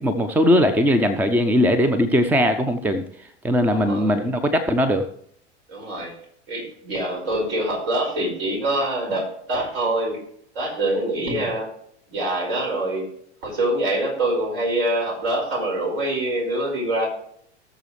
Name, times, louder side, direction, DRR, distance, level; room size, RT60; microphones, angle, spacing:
voice 1, 0.0-5.1 11.3-11.4, equal, 5° right, 10 dB, 0.6 m, -20 dB
voice 2, 3.7-4.3 5.7-6.1 6.5-10.2 10.5-11.7 12.1-13.1 13.4-17.1, right 1 dB, 55° right, 0 dB, 5.3 m, -25 dB
19.0 x 6.8 x 3.2 m, 0.68 s
figure-of-eight pair, 85°, 35 cm